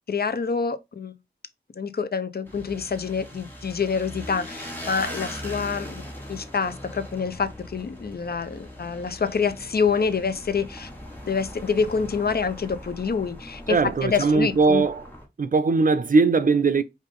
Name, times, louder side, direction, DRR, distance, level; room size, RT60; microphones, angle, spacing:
voice 1, 0.1-1.1 1.8-6.0 6.3-10.9 11.3-14.8, left 5 dB, 60° left, 0.6 m, -26 dB
sound 1, 2.5-15.3, equal, 10° left, 1.7 m, -40 dB
sound 2, 7.2-14.6, left 1 dB, 40° left, 1.3 m, -49 dB
voice 2, 13.7-15.0 15.4-16.8, right 4 dB, 50° right, 0.5 m, -20 dB
5.1 x 2.6 x 3.5 m
wide cardioid pair, 55°, 18 cm